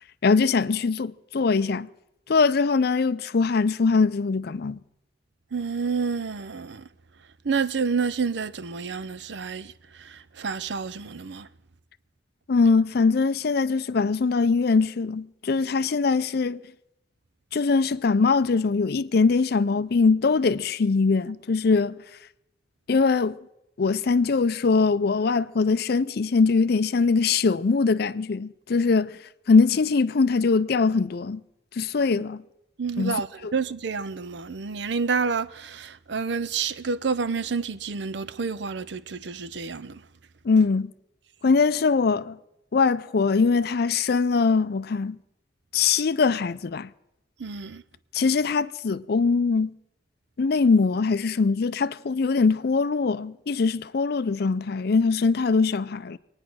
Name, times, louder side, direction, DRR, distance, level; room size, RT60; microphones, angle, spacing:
voice 1, 0.2-1.9 2.3-4.8 12.5-16.6 17.5-22.0 22.9-23.4 23.8-29.1 29.5-31.4 31.8-32.4 33.0-33.2 33.4-33.5 40.4-40.9 41.4-42.4 42.7-45.2 45.7-46.9 48.1-49.7 50.4-56.2, left 4 dB, 55° left, 0.5 m, -22 dB
voice 2, 5.5-6.9 7.4-11.5 32.1-32.2 32.8-40.0 47.4-47.8, right 5 dB, 65° right, 0.6 m, -29 dB
23.5 x 9.7 x 6.2 m
head